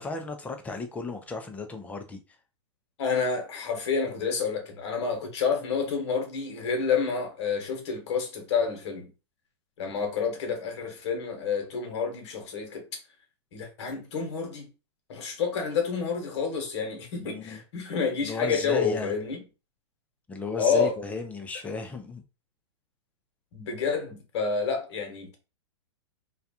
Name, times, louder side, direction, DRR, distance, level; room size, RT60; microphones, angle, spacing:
voice 1, 0.0-2.2 17.2-17.6 18.2-19.1 20.3-22.2, left 3 dB, 10° left, 0.4 m, -35 dB
voice 2, 3.0-9.1 9.8-12.8 13.5-14.7 15.1-19.4 20.6-21.0 23.5-25.4, left 5 dB, 60° left, 1.0 m, -29 dB
2.3 x 2.3 x 2.7 m
hypercardioid pair, 120°, 16 cm